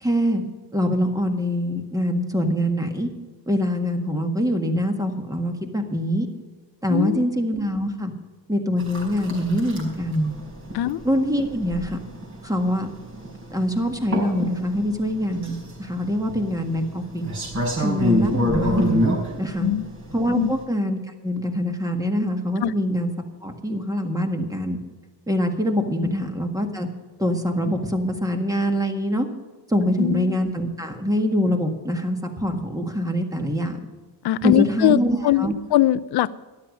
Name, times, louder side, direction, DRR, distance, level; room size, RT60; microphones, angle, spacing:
voice 1, 0.0-0.4 0.7-3.1 3.5-6.3 6.8-8.1 8.5-10.3 11.0-12.0 12.4-12.9 13.5-17.3 17.8-19.0 19.4-19.7 20.1-23.1 23.4-24.8 25.3-26.9 27.2-29.3 29.7-33.8 34.4-35.5, equal, 10° right, 4 dB, 1.6 m, -24 dB
voice 2, 6.9-7.2 10.7-11.0 19.6-19.9 20.4-20.5 22.6-22.7 30.0-30.4 34.2-36.3, left 14 dB, 60° left, 17 dB, 0.6 m, -21 dB
sound 1, 8.8-20.6, equal, 40° right, 5.0 m, -27 dB
13.0 x 11.5 x 5.3 m, 1.4 s
cardioid pair, 140°, 43 cm